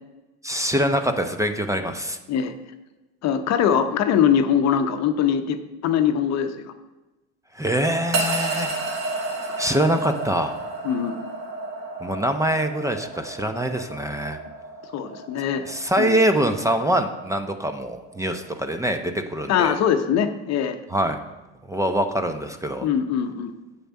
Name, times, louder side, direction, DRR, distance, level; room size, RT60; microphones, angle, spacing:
voice 1, 0.4-2.2 7.5-8.7 9.6-10.5 12.0-14.4 15.7-19.7 20.9-21.2 21.7-22.9, right 1 dB, 10° right, 7 dB, 0.8 m, -24 dB
voice 2, 3.2-6.7 10.8-11.3 14.9-15.6 16.0-16.2 19.5-20.8 22.8-23.5, left 8 dB, 50° left, 8 dB, 0.9 m, -22 dB
sound 1, 8.1-18.5, right 2 dB, 65° right, 2.0 m, -32 dB
7.6 x 6.7 x 5.4 m, 1.1 s
hypercardioid pair, 75°, 35 cm